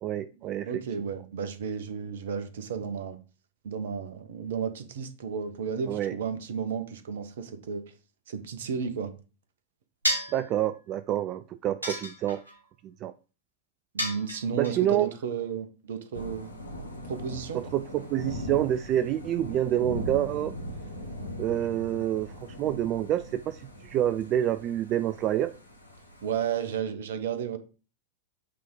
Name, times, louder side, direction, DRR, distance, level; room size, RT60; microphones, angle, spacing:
voice 1, 0.0-0.8 5.9-6.2 10.3-12.4 12.8-13.1 14.5-15.1 17.5-20.5 21.4-25.5, right 12 dB, 35° right, 0.3 m, -28 dB
voice 2, 0.7-3.2 3.6-7.8 8.3-9.1 13.9-16.5 17.0-17.6 26.2-27.6, right 7 dB, 60° right, 1.0 m, -33 dB
sound 1, 10.0-10.4 11.8-12.5 14.0-14.7, equal, 80° right, 2.6 m, -30 dB
Thunder / Rain, 16.1-26.8, equal, 85° left, 1.3 m, -40 dB
8.4 x 3.6 x 4.6 m
figure-of-eight pair, 90°, 0 cm